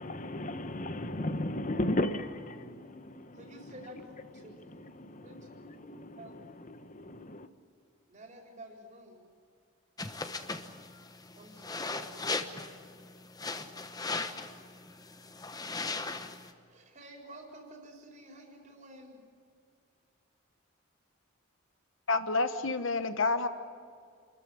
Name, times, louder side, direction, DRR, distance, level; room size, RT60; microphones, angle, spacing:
voice 1, 0.0-7.5, left 1 dB, 35° left, 1.2 m, -36 dB
voice 2, 3.3-4.6 5.2-5.6 6.2-6.4 8.1-9.3 10.0-10.3 11.4-13.0 13.5-13.8 16.7-19.2, right 1 dB, 35° right, 4.2 m, -51 dB
sound 1, 10.0-16.5, left 3 dB, 15° left, 1.0 m, -38 dB
voice 3, 22.1-23.5, left 3 dB, 60° left, 1.2 m, -29 dB
28.0 x 14.0 x 9.7 m
head